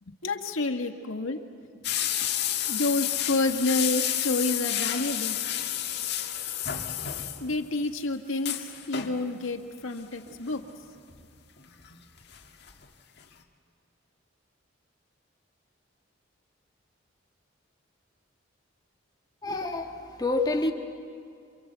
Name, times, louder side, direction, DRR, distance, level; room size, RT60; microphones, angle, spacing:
voice 1, 0.0-1.7 2.7-5.4 7.4-10.6, left 2 dB, 85° left, 1.7 m, -29 dB
sound 1, 1.8-7.7 8.0-8.1 8.3-9.2 10.3-10.5 11.1-12.4 12.7-12.8 13.2-13.3, left 11 dB, 55° left, 1.8 m, -30 dB
voice 2, 19.4-20.7, left 2 dB, 20° left, 1.7 m, -28 dB
28.5 x 24.0 x 8.1 m
head